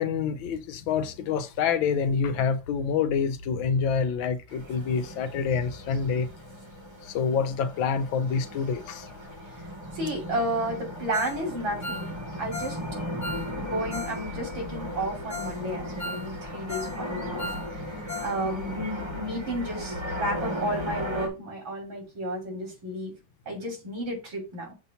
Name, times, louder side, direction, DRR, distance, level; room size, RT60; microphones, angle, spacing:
voice 1, 0.0-6.3 7.0-9.1, left 6 dB, 80° left, 1.5 m, -27 dB
sound 1, 4.5-21.3, equal, 20° right, 1.0 m, -36 dB
voice 2, 9.9-12.8 13.6-17.4 17.7-23.1 23.5-24.7, right 1 dB, 85° right, 3.7 m, -32 dB
Ringtone, 11.1-11.4 11.7-14.2 14.5-14.6 15.0-15.1 15.3-15.6 15.8-17.0 17.2-18.4 18.6-18.7 19.2-19.3, left 2 dB, 15° left, 0.5 m, -37 dB
7.4 x 2.8 x 5.6 m
omnidirectional pair, 2.1 m